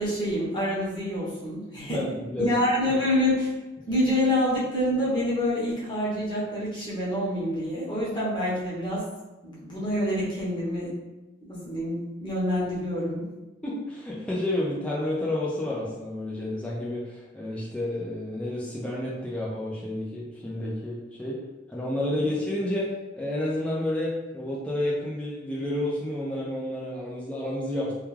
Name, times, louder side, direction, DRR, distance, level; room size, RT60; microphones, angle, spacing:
voice 1, 0.0-2.0 2.4-3.5 3.9-9.0 9.4-10.9 11.5-13.2, left 1 dB, 25° left, -7 dB, 0.8 m, -27 dB
voice 2, 1.8-2.5 13.6-21.4 21.7-27.9, left 1 dB, 5° left, -6 dB, 0.4 m, -30 dB
2.3 x 2.2 x 3.1 m, 1.1 s
head